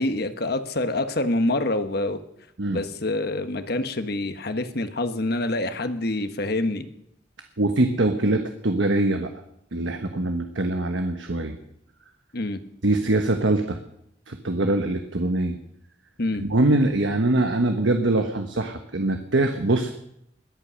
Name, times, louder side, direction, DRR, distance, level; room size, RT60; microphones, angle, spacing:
voice 1, 0.0-2.2 2.7-6.9 12.3-12.6 16.2-16.4, left 2 dB, 60° left, 9 dB, 1.2 m, -26 dB
voice 2, 7.6-9.3 9.7-11.6 12.8-13.8 14.3-15.6 16.4-19.9, right 2 dB, 90° right, 6 dB, 1.2 m, -23 dB
21.5 x 8.5 x 6.3 m, 0.77 s
head